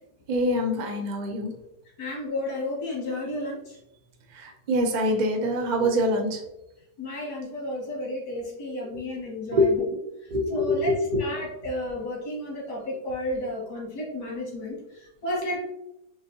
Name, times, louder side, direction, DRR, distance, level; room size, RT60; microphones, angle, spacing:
voice 1, 0.3-1.5 4.3-6.4 9.5-9.6 10.3-11.2, equal, 65° right, 2 dB, 0.4 m, -25 dB
voice 2, 2.0-3.8 7.0-9.8 10.5-10.9 11.2-15.6, left 1 dB, 85° left, -3 dB, 2.1 m, -32 dB
5.0 x 2.7 x 2.7 m, 0.85 s
omnidirectional pair, 1.8 m